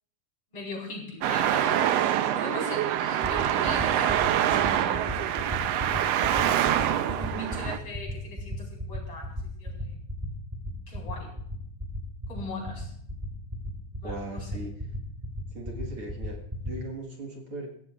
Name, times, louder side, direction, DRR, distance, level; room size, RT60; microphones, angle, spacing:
voice 1, 0.5-1.8 2.3-5.0 5.7-6.5 7.1-9.9 10.9-11.3 12.3-12.9 14.0-14.5, left 2 dB, 50° left, -2 dB, 5.3 m, -40 dB
Traffic noise roadway noise, 1.2-7.8, right 11 dB, 75° right, 1.5 m, -25 dB
sound 1, 3.2-16.7, left 1 dB, 10° right, 3.0 m, -34 dB
voice 2, 14.0-14.7 15.5-17.7, right 2 dB, 50° right, 0 dB, 2.4 m, -39 dB
23.0 x 16.0 x 2.5 m, 0.68 s
omnidirectional pair, 3.4 m